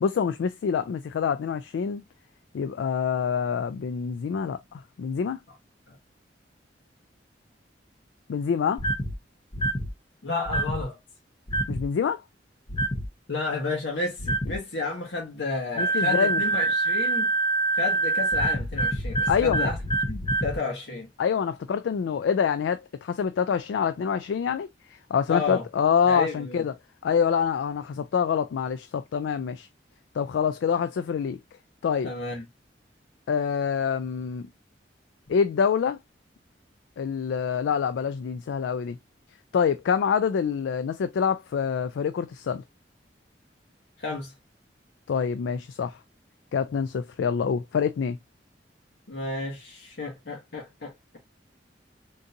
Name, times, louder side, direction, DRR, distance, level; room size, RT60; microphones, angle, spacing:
voice 1, 0.0-2.0 2.5-5.4 8.3-8.8 11.7-12.2 15.8-16.4 19.3-19.7 21.2-26.7 27.0-29.7 30.1-31.4 31.8-32.1 33.3-34.5 35.3-36.0 37.0-39.0 39.5-42.6 45.1-46.0 46.5-48.2, left 7 dB, 90° left, 0.3 m, -26 dB
sound 1, 8.8-9.1 9.5-9.9 10.5-10.8 11.5-11.8 12.7-13.1 14.2-14.6 15.8-20.6, right 2 dB, 30° left, 0.6 m, -26 dB
voice 2, 10.2-11.0 13.3-17.3 17.7-19.8 20.1-21.1 25.3-25.6 26.1-26.6 32.0-32.4 44.0-44.3 49.1-51.2, left 3 dB, 75° left, 1.1 m, -32 dB
3.8 x 2.6 x 2.6 m
head